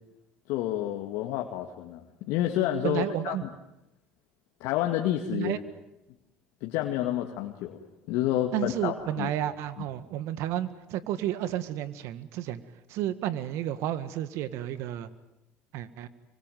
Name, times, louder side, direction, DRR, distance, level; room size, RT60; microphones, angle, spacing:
voice 1, 0.5-3.3 4.6-5.6 6.6-7.8 8.1-9.3, left 12 dB, 75° left, 3 dB, 2.1 m, -29 dB
voice 2, 2.8-3.4 5.3-5.6 8.5-12.6 12.9-15.1 15.7-16.1, right 12 dB, 75° right, 14 dB, 1.8 m, -31 dB
26.0 x 24.5 x 9.3 m, 0.89 s
supercardioid pair, 70°, 5 cm